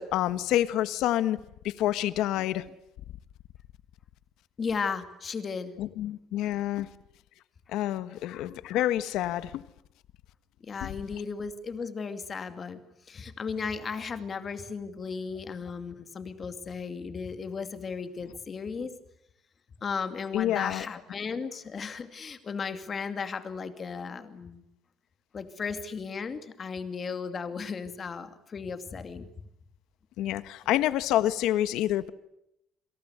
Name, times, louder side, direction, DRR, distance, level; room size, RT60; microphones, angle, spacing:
voice 1, 0.0-1.4 1.6-2.6 5.8-6.9 7.7-9.6 10.8-10.9 20.3-20.9 30.2-32.1, left 13 dB, 75° left, 1.5 m, -28 dB
voice 2, 4.6-5.7 10.6-12.8 13.1-18.9 19.8-24.6 25.3-29.3, left 5 dB, 25° left, 2.4 m, -35 dB
28.0 x 26.0 x 8.1 m
cardioid pair, 175°, 0 cm